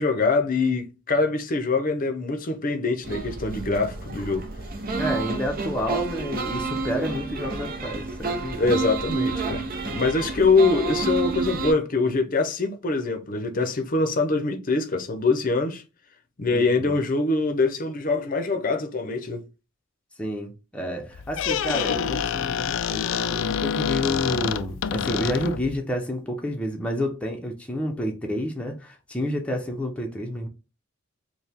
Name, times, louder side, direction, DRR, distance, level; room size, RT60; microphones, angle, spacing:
voice 1, 0.0-4.5 8.6-15.8 16.4-19.4, left 3 dB, 40° left, 0.7 m, -24 dB
sound 1, 3.0-11.7, right 3 dB, 45° right, 0.7 m, -30 dB
voice 2, 5.0-8.8 16.5-17.0 20.2-30.5, equal, 5° left, 0.7 m, -30 dB
Squeak, 21.1-25.8, left 8 dB, 65° left, 0.3 m, -27 dB
4.6 x 2.2 x 3.5 m
head